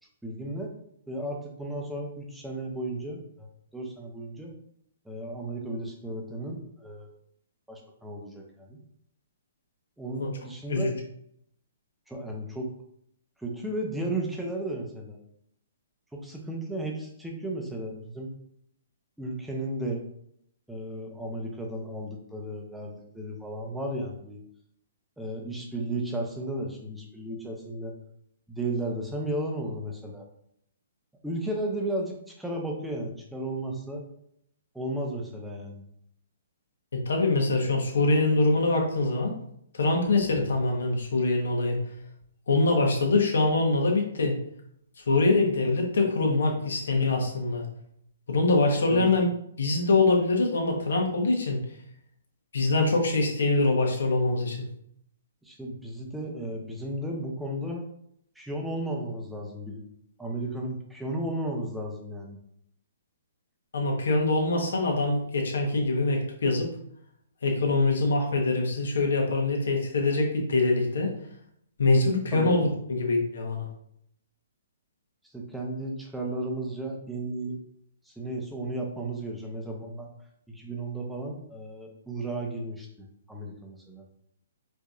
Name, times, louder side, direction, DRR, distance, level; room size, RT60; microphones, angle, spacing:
voice 1, 0.2-0.7 1.1-3.5 3.7-4.5 5.1-7.1 7.7-8.8 10.0-11.0 12.1-12.7 13.4-15.2 16.1-18.3 19.2-20.0 20.7-24.4 25.2-28.0 28.5-30.2 31.2-34.1 34.7-35.8 48.9-49.1 55.4-57.8 58.4-59.8 60.2-62.4 72.3-72.5 75.3-77.6 78.1-80.1 80.5-82.9 83.3-84.0, right 1 dB, 5° right, 0 dB, 0.6 m, -34 dB
voice 2, 36.9-39.3 39.7-41.8 42.5-44.4 45.1-47.6 48.3-49.3 49.6-51.6 52.5-54.6 63.7-66.7 67.4-71.1 71.8-73.7, left 2 dB, 80° left, 1 dB, 1.0 m, -24 dB
4.6 x 2.7 x 2.4 m, 0.70 s
hypercardioid pair, 160°, 0 cm